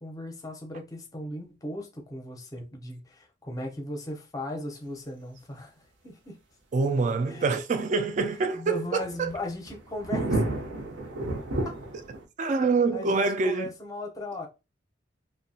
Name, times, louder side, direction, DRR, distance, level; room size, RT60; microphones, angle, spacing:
voice 1, 0.0-6.4 7.3-7.5 8.5-10.4 11.6-11.8 12.9-14.5, left 1 dB, 20° left, 0.6 m, -37 dB
voice 2, 6.7-9.3 12.4-13.7, right 4 dB, 40° right, 0.3 m, -26 dB
sound 1, 8.9-12.2, right 2 dB, 75° right, 0.6 m, -31 dB
2.7 x 2.1 x 2.7 m
head